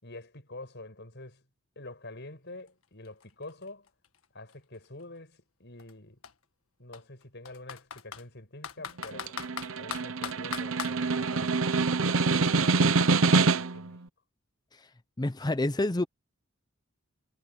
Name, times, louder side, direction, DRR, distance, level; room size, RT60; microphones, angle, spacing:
voice 1, 0.0-1.4 1.8-3.9 4.3-6.2 6.8-9.3 9.8-11.6 12.2-13.2 13.6-14.0, left 2 dB, 55° left, 7.7 m, -46 dB
Computer keyboard, 2.7-2.8 3.0-5.0 5.8-5.9 6.2-6.3 6.9-8.2 8.6-11.0, left 7 dB, 75° left, 1.6 m, -39 dB
Snare drum, 9.0-13.9, right 3 dB, 65° right, 0.9 m, -25 dB
voice 2, 15.2-16.0, left 1 dB, 20° left, 0.6 m, -28 dB
head